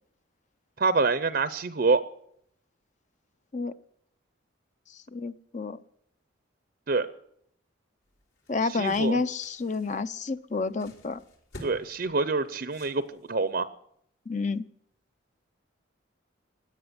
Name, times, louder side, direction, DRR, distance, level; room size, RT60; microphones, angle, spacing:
voice 1, 0.8-2.0 6.9-7.1 8.7-9.2 11.6-13.7, right 3 dB, 50° right, 13 dB, 0.6 m, -26 dB
voice 2, 5.1-5.8 8.5-11.2 14.3-14.6, left 4 dB, 35° left, 13 dB, 0.6 m, -29 dB
sound 1, 8.1-13.5, left 1 dB, 70° left, 4.0 m, -51 dB
17.5 x 10.5 x 8.0 m, 0.72 s
head